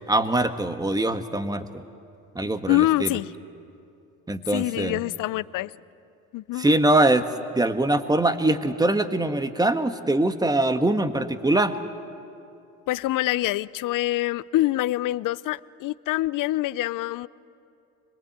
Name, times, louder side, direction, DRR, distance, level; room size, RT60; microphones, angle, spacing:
voice 1, 0.0-1.8 2.3-3.1 4.3-5.0 6.6-7.2 7.5-11.8, right 1 dB, 10° right, 9 dB, 1.6 m, -23 dB
voice 2, 2.7-3.3 4.5-5.7 6.3-6.7 12.9-17.3, left 16 dB, 55° left, 19 dB, 0.7 m, -25 dB
25.5 x 22.0 x 8.1 m, 2.7 s
hypercardioid pair, 70°, 39 cm